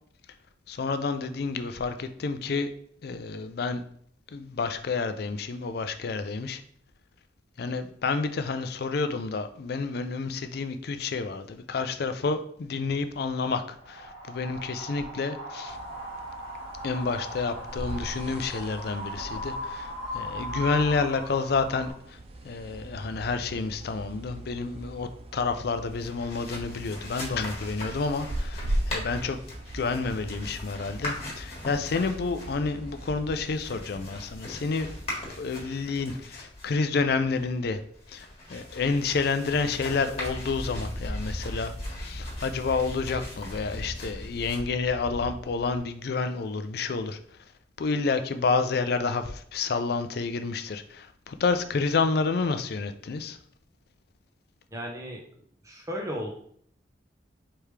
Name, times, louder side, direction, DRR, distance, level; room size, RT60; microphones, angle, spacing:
voice 1, 0.7-2.7 3.0-3.8 4.3-6.6 7.6-15.8 16.8-22.2 22.4-29.4 29.7-34.9 35.4-37.8 38.1-47.2 47.8-53.4, left 4 dB, 55° left, 0.4 m, -29 dB
Wind, 13.8-21.9, left 1 dB, 60° right, 1.8 m, -38 dB
sound 1, 15.7-33.3, right 1 dB, 35° right, 0.4 m, -39 dB
sound 2, 25.8-45.8, left 1 dB, 35° left, 1.6 m, -39 dB
voice 2, 54.7-55.2 55.6-56.3, equal, 15° right, 0.8 m, -34 dB
4.7 x 3.4 x 3.3 m
head